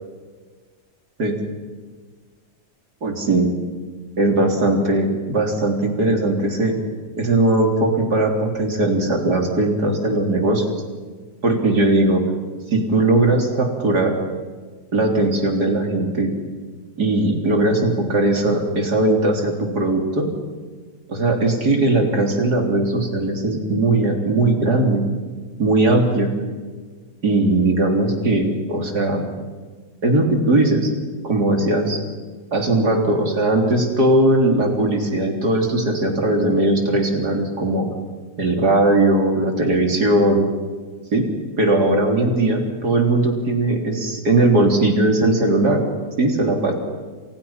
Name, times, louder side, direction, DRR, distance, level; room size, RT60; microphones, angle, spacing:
voice 1, 3.0-3.5 4.2-6.8 7.2-10.6 11.4-12.2 12.7-14.2 14.9-16.3 17.0-20.3 21.1-25.0 25.6-26.3 27.2-29.3 30.0-30.9 31.2-32.0 32.5-37.9 38.4-40.5 41.1-41.3 41.6-45.8 46.2-46.7, right 2 dB, 70° right, 3 dB, 4.1 m, -19 dB
29.0 x 27.0 x 5.8 m, 1.5 s
omnidirectional pair, 1.7 m